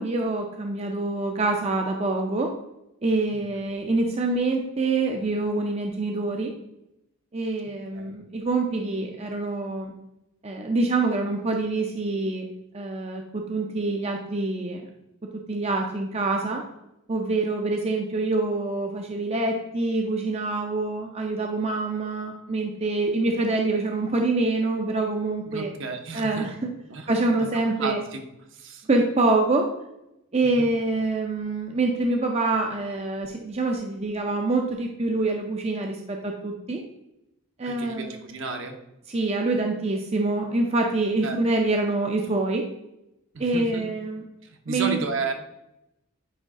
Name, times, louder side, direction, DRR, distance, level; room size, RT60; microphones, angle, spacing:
voice 1, 0.0-2.5 3.0-6.5 7.3-9.9 10.4-12.5 12.7-14.8 15.5-16.6 17.1-25.7 26.1-26.7 27.1-28.0 28.9-29.7 30.3-36.8 37.6-38.2 39.1-42.6 43.4-44.2 44.7-45.0, right 2 dB, 30° right, 2 dB, 0.5 m, -25 dB
voice 2, 25.5-26.6 26.9-27.1 27.4-27.5 27.8-28.2 28.5-28.9 30.4-30.7 37.7-38.8 41.2-41.4 43.3-43.8 44.4-45.3, right 4 dB, 60° right, 4 dB, 0.8 m, -32 dB
9.0 x 3.1 x 3.6 m, 0.87 s
head